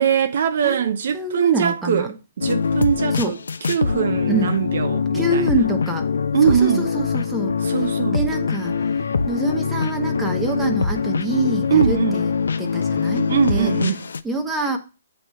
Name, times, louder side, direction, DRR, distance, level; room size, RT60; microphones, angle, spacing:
voice 1, 0.0-3.4 3.7-5.6 6.3-6.8 7.6-8.3 11.7-12.2 13.3-14.1, right 8 dB, 60° right, 0.6 m, -21 dB
voice 2, 1.1-2.1 3.2-3.3 4.3-4.5 5.1-6.1 6.4-7.6 8.1-8.7 9.3-12.3 12.6-13.7 14.2-14.8, right 2 dB, 5° right, 1.0 m, -25 dB
sound 1, 2.4-14.2, left 5 dB, 75° left, 0.4 m, -23 dB
7.6 x 3.2 x 5.5 m
hypercardioid pair, 145°, 0 cm